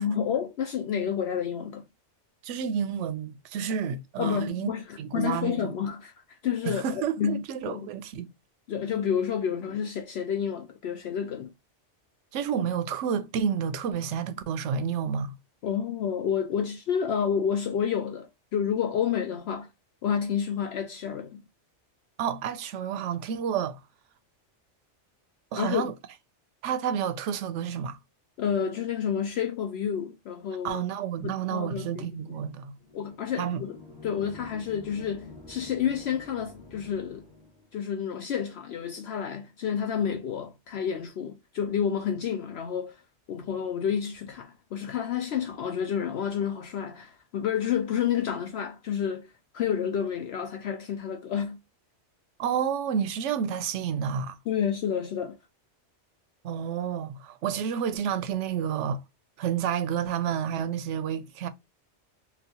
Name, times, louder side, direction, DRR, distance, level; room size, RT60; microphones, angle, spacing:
voice 1, 0.0-1.8 4.2-6.1 6.4-6.9 7.2-7.9 8.7-11.5 15.6-19.7 20.0-21.4 25.6-25.9 28.4-30.8 31.2-32.1 32.9-37.3 37.7-43.0 43.3-49.3 49.5-51.6 54.5-55.4, left 8 dB, 70° left, 0.8 m, -29 dB
voice 2, 2.4-4.7 5.0-5.9 6.6-8.3 12.3-15.3 22.2-23.8 25.5-25.9 26.6-28.0 30.6-32.7 33.4-33.6 52.4-54.4 56.4-59.0 59.4-61.5, right 8 dB, 80° right, 0.9 m, -30 dB
sound 1, 32.8-37.7, left 3 dB, 50° left, 1.4 m, -48 dB
3.9 x 2.3 x 2.7 m
omnidirectional pair, 1.2 m